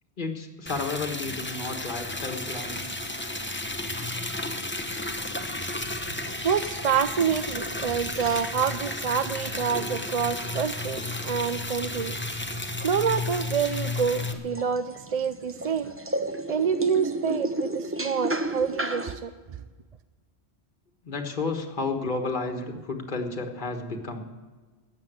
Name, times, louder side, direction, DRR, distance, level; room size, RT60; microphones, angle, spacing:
voice 1, 0.2-2.8 5.4-5.5 15.6-15.7 21.0-24.2, left 3 dB, 50° left, 4 dB, 1.7 m, -32 dB
Liquid, 0.7-14.3, left 2 dB, 10° left, 1.0 m, -33 dB
sound 1, 3.7-19.2, right 1 dB, 15° right, 0.8 m, -37 dB
voice 2, 5.9-12.2 12.4-16.0 16.5-19.3, right 7 dB, 45° right, 12 dB, 0.5 m, -27 dB
14.0 x 8.9 x 9.4 m, 1.4 s
omnidirectional pair, 1.1 m